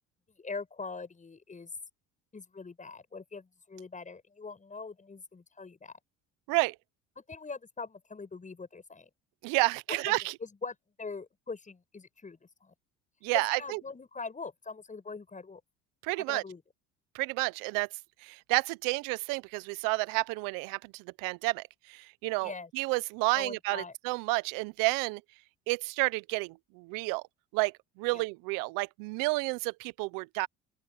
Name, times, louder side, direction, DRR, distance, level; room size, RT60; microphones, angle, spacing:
voice 1, 0.4-1.7 2.3-6.0 7.2-9.1 9.9-12.7 13.3-15.6 16.2-16.6 22.4-22.7 23.3-23.9 28.1-28.2, left 4 dB, 25° left, 7.8 m, -42 dB
voice 2, 9.4-10.3 13.2-13.8 16.0-16.4 17.1-17.9 18.2-25.2 25.7-27.2 27.5-30.5, right 25 dB, 80° right, 0.7 m, -30 dB
open air
supercardioid pair, 95°, 32 cm